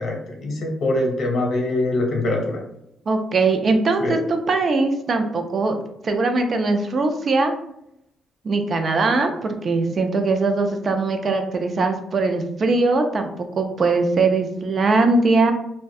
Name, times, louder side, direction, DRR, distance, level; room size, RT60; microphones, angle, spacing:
voice 1, 0.0-2.6 4.0-4.2, left 2 dB, 60° left, 1 dB, 0.7 m, -23 dB
voice 2, 3.1-5.8 6.0-7.5 8.4-15.5, right 3 dB, 45° right, 6 dB, 0.4 m, -21 dB
2.3 x 2.1 x 2.6 m, 0.80 s
cardioid pair, 90°, 0 cm